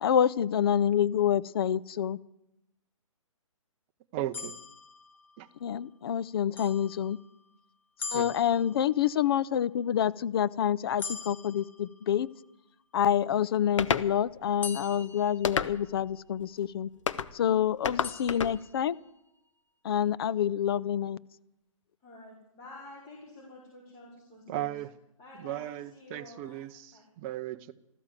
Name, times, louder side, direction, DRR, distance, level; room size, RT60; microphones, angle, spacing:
voice 1, 0.0-2.2 5.6-7.2 8.1-12.3 12.9-16.9 17.3-19.0 19.8-21.2, left 9 dB, 45° left, 19 dB, 0.6 m, -27 dB
voice 2, 4.1-4.6 5.4-5.5 8.1-8.4 24.5-24.9 25.4-27.7, right 13 dB, 25° right, 8 dB, 0.6 m, -36 dB
sound 1, 4.3-5.7 6.6-7.5 8.0-9.2 11.0-12.5 14.6-16.2 18.0-19.2, left 5 dB, 10° left, 0.9 m, -43 dB
sound 2, 13.8-14.1 15.4-16.0 17.1-17.3 17.8-18.6, left 7 dB, 60° left, 0.9 m, -29 dB
voice 3, 22.0-24.8 25.2-26.6 26.9-27.0, left 2 dB, 25° left, -5 dB, 4.6 m, -50 dB
14.5 x 13.5 x 7.5 m, 0.84 s
figure-of-eight pair, 135°, 17 cm